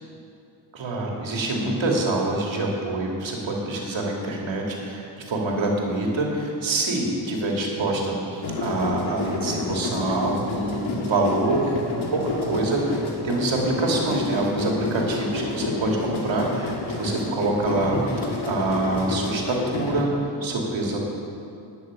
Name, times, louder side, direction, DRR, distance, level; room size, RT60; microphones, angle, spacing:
voice 1, 0.7-11.7 12.1-21.0, right 2 dB, 70° right, -1 dB, 2.7 m, -26 dB
sound 1, 8.4-20.0, left 3 dB, 80° left, 2.0 m, -29 dB
11.0 x 7.0 x 9.4 m, 2.6 s
cardioid pair, 70°, 47 cm